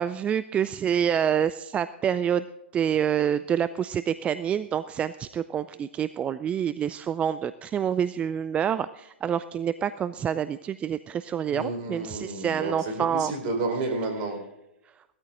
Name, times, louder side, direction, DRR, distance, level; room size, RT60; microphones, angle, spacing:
voice 1, 0.0-2.4 2.7-13.3, right 8 dB, 20° right, 14 dB, 0.4 m, -27 dB
voice 2, 11.5-14.4, right 2 dB, 45° right, 4 dB, 4.4 m, -31 dB
18.0 x 13.5 x 3.7 m, 0.90 s
figure-of-eight pair, 110°, 6 cm